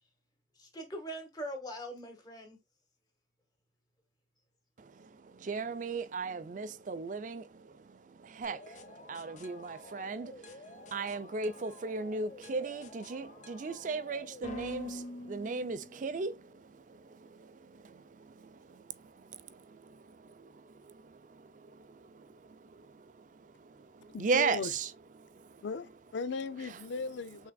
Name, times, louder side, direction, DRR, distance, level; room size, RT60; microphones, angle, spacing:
voice 1, 0.6-2.6, equal, 20° left, 1.5 m, -42 dB
voice 2, 4.8-24.9 25.2-25.7 26.7-26.8, right 4 dB, 45° right, 0.4 m, -38 dB
sound 1, 8.4-16.2, left 1 dB, 40° left, 0.9 m, -48 dB
voice 3, 24.1-24.7 25.6-27.5, left 4 dB, 80° left, 0.4 m, -37 dB
5.8 x 3.6 x 2.2 m
head